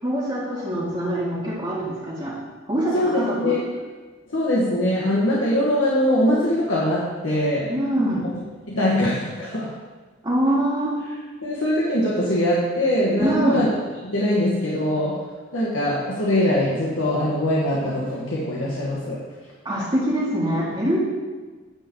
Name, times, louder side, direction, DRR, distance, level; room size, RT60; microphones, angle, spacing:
voice 1, 0.0-2.4 2.7-3.6 7.7-8.2 10.2-11.0 13.2-13.7 19.6-21.0, right 1 dB, 25° right, -8 dB, 1.8 m, -24 dB
voice 2, 2.9-3.6 4.3-7.7 8.7-9.7 11.4-13.6 14.0-15.2 15.5-19.2, left 1 dB, 85° left, -6 dB, 1.5 m, -22 dB
9.8 x 3.8 x 7.3 m, 1.3 s
head